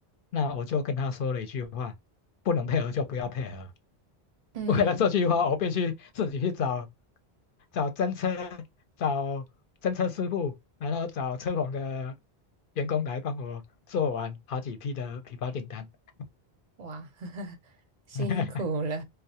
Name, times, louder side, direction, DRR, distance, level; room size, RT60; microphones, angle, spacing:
voice 1, 0.3-1.9 2.5-3.7 4.7-6.9 7.7-8.6 9.0-9.4 9.8-10.5 10.8-12.1 12.8-13.6 13.9-15.9 18.1-18.4, left 5 dB, 65° left, 0.7 m, -29 dB
voice 2, 4.5-5.1 16.8-17.6 18.1-19.0, right 2 dB, 50° right, 0.6 m, -34 dB
2.2 x 2.0 x 2.6 m
omnidirectional pair, 1.0 m